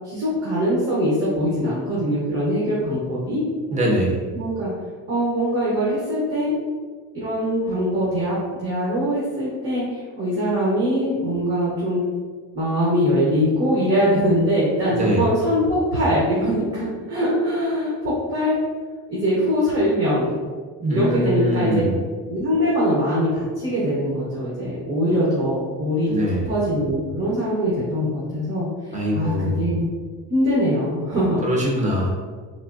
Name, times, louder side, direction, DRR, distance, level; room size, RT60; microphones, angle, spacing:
voice 1, 0.0-3.4 4.3-4.7 5.1-6.5 7.1-12.0 12.5-18.6 19.1-20.3 20.9-21.8 22.3-26.1 26.4-28.7 29.1-29.8 30.3-31.4, equal, 35° right, -8 dB, 1.1 m, -22 dB
voice 2, 3.7-4.2 14.9-15.3 20.8-22.0 26.1-26.5 28.9-29.7 31.4-32.1, equal, 20° right, -3 dB, 0.8 m, -22 dB
3.6 x 3.0 x 2.5 m, 1.5 s
cardioid pair, 130°, 38 cm